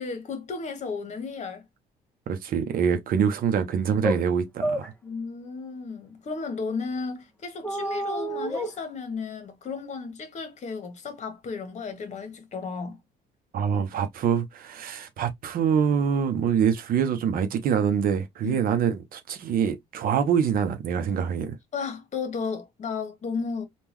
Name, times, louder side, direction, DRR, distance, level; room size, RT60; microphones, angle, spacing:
voice 1, 0.0-1.6 5.0-13.0 18.4-18.6 21.7-23.7, left 5 dB, 45° left, 1.3 m, -34 dB
voice 2, 2.3-4.9 13.5-21.6, right 7 dB, 60° right, 0.8 m, -25 dB
sound 1, 3.7-3.8 4.0-4.2 4.6-4.9 7.6-8.7, right 1 dB, 10° left, 1.0 m, -29 dB
3.6 x 2.4 x 3.0 m
cardioid pair, 110°, 17 cm